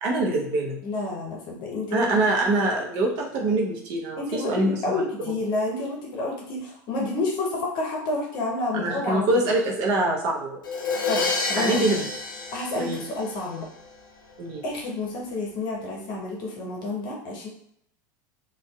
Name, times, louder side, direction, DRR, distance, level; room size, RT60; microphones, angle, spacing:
voice 1, 0.0-0.8 1.9-5.0 5.3-5.4 8.7-10.6 11.6-12.1 12.7-13.0 14.4-14.6, right 2 dB, 55° right, 0 dB, 0.7 m, -24 dB
voice 2, 0.8-2.1 4.2-9.5 11.1-12.0 12.5-13.7 14.6-17.5, left 2 dB, 45° left, -1 dB, 0.7 m, -29 dB
Crash cymbal, 10.6-13.6, left 3 dB, 85° left, 0.4 m, -29 dB
2.5 x 2.2 x 2.2 m, 0.70 s
hypercardioid pair, 85°, 10 cm